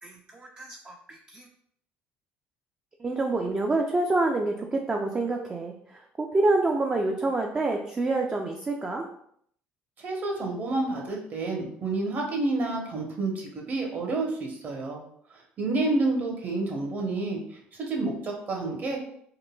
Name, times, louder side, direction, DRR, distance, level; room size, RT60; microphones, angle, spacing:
voice 1, 0.0-1.5 3.0-9.1, right 2 dB, 20° right, 2 dB, 0.3 m, -27 dB
voice 2, 10.0-15.0 15.6-17.4 17.8-19.0, right 2 dB, 45° right, 0 dB, 0.8 m, -29 dB
3.7 x 2.1 x 2.2 m, 0.66 s
supercardioid pair, 100°, 5 cm